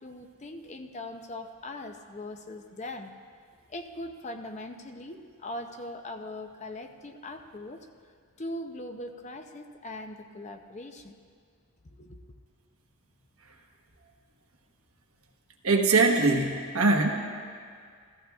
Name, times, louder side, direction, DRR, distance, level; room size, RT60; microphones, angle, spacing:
voice 1, 0.0-3.1 3.7-7.8 8.4-11.2 12.0-12.2, left 1 dB, 30° left, 6 dB, 0.5 m, -40 dB
voice 2, 15.6-17.1, right 3 dB, 75° right, 1 dB, 1.2 m, -22 dB
15.5 x 14.5 x 2.4 m, 2.1 s
head